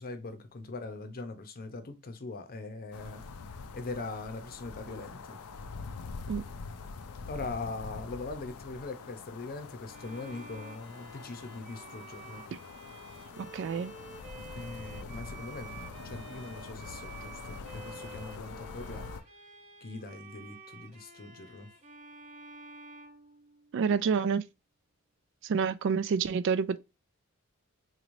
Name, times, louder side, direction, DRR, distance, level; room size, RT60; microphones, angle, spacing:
voice 1, 0.0-3.2 3.7-5.4 7.3-12.4 14.5-19.1 19.8-21.7, left 3 dB, 45° left, 0.7 m, -41 dB
sound 1, 2.9-19.2, left 4 dB, 85° left, 0.5 m, -45 dB
Bowed string instrument, 9.9-23.9, right 3 dB, 35° right, 1.0 m, -50 dB
voice 2, 13.4-13.9 23.7-24.4 25.4-26.8, right 6 dB, 55° right, 0.3 m, -28 dB
3.9 x 3.1 x 2.5 m
head